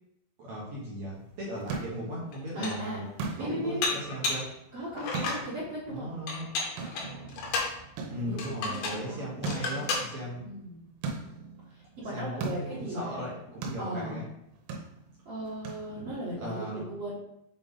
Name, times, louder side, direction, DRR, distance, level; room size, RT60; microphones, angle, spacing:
voice 1, 0.4-3.1 3.4-4.5 5.9-6.5 8.1-10.5 12.1-14.2 16.4-16.9, equal, 65° right, -6 dB, 1.8 m, -37 dB
sound 1, 1.1-16.3, right 4 dB, 85° right, 3.1 m, -42 dB
Dishes pots and pans, 1.7-1.8 2.3-2.9 3.8-4.5 5.0-5.5 6.3-7.8 8.4-9.1 9.4-10.1, left 3 dB, 80° left, 3.0 m, -32 dB
voice 2, 2.5-3.1 3.4-3.9 4.7-6.1 8.2-9.3 10.4-10.8 11.7-13.2 13.8-14.2 15.3-17.1, right 1 dB, 45° right, -10 dB, 2.4 m, -37 dB
7.2 x 3.8 x 3.8 m, 0.80 s
omnidirectional pair, 4.8 m